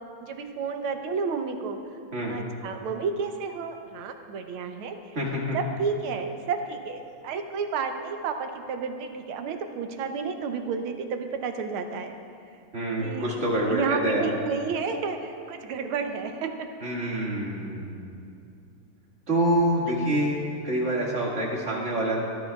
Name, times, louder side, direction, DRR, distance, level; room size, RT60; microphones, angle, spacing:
voice 1, 0.3-1.8 2.3-5.0 5.5-12.1 13.0-13.4 13.7-16.5 20.0-20.1, right 5 dB, 80° right, 6 dB, 1.7 m, -31 dB
voice 2, 5.2-5.6 12.7-14.3 16.8-18.1 19.3-22.2, right 1 dB, 35° right, -4 dB, 2.1 m, -26 dB
18.0 x 11.5 x 2.3 m, 2.5 s
omnidirectional pair, 2.3 m